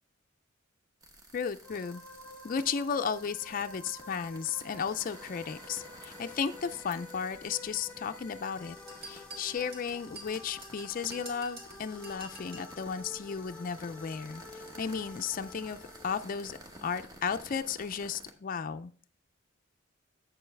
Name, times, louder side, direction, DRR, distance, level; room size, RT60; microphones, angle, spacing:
sound 1, 1.0-18.3, right 1 dB, 20° right, 1.0 m, -52 dB
voice 1, 1.3-2.0 2.4-8.8 9.0-15.8 16.0-19.1, left 6 dB, 45° left, 9 dB, 0.4 m, -34 dB
sound 2, 1.6-17.0, left 3 dB, 5° left, 1.0 m, -50 dB
sound 3, 8.9-12.7, right 2 dB, 50° right, 1.8 m, -48 dB
8.4 x 6.9 x 3.3 m, 0.44 s
head